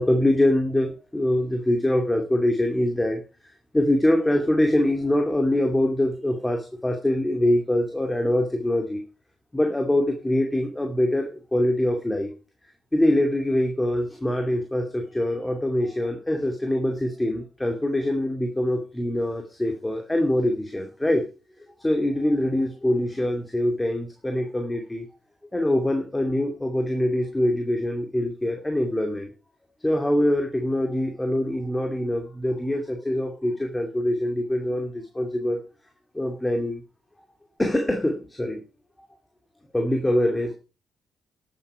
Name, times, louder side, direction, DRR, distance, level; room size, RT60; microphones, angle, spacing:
voice 1, 0.0-9.0 9.5-12.3 12.9-21.3 21.8-25.1 25.5-29.3 29.8-35.6 36.1-36.8 37.6-38.6 39.7-40.5, left 1 dB, 10° left, 3 dB, 2.4 m, -24 dB
12.0 x 8.5 x 5.5 m, 0.34 s
cardioid pair, 90°, 0 cm